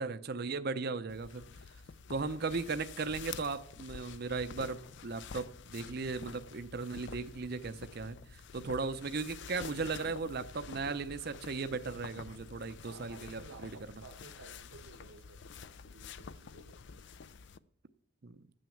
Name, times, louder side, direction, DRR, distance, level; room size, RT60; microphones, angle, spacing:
voice 1, 0.0-1.4 2.1-13.7 18.2-18.4, right 4 dB, 45° right, 0.6 m, -37 dB
sound 1, 1.1-17.6, left 6 dB, 55° left, 0.4 m, -49 dB
voice 2, 12.8-17.2, right 3 dB, 85° right, 1.2 m, -56 dB
10.0 x 9.2 x 7.2 m
head